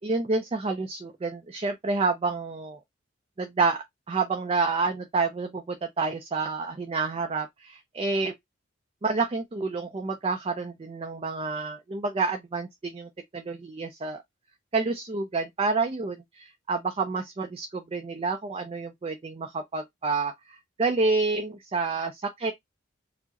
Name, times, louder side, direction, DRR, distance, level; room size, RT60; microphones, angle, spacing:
voice 1, 0.0-2.8 3.4-8.3 9.0-14.2 14.7-22.5, right 3 dB, 30° right, 0.4 m, -29 dB
4.5 x 2.0 x 2.8 m
head